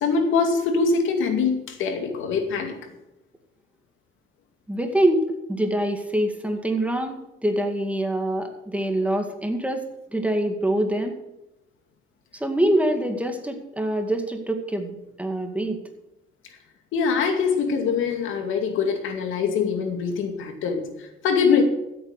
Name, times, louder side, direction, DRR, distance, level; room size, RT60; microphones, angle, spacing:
voice 1, 0.0-2.7 16.9-21.6, left 5 dB, 85° left, 5 dB, 2.4 m, -23 dB
voice 2, 4.7-5.2 5.5-9.9 10.1-11.1 12.3-15.8, right 1 dB, 5° right, 5 dB, 2.1 m, -25 dB
14.0 x 8.5 x 6.6 m, 0.92 s
cardioid pair, 90°, 20 cm